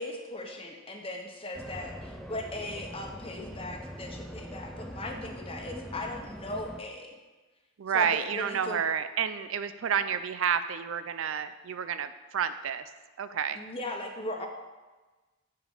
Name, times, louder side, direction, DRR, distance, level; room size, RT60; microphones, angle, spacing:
voice 1, 0.0-7.1 7.9-8.8 13.5-14.5, left 1 dB, 25° left, 2 dB, 1.1 m, -38 dB
sound 1, 1.5-6.8, equal, ahead, 0.5 m, -42 dB
voice 2, 7.8-12.9 13.2-13.6, right 7 dB, 75° right, 11 dB, 0.4 m, -30 dB
10.0 x 5.0 x 5.5 m, 1.2 s
head